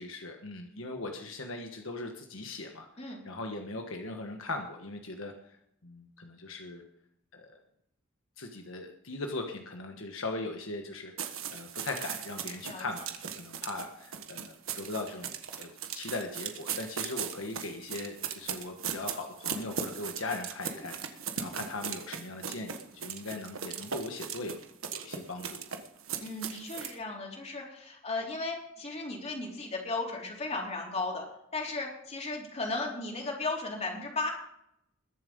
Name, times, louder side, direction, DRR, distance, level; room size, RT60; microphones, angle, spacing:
voice 1, 0.0-2.9 3.2-5.3 5.8-6.8 7.3-7.5 8.4-24.6 24.9-25.6, left 2 dB, 75° left, 4 dB, 1.4 m, -39 dB
sound 1, 11.2-27.0, right 7 dB, 85° right, 1.4 m, -38 dB
voice 2, 26.2-31.2 31.5-34.3, left 3 dB, 35° left, 0 dB, 3.7 m, -35 dB
21.5 x 7.4 x 5.3 m, 0.75 s
head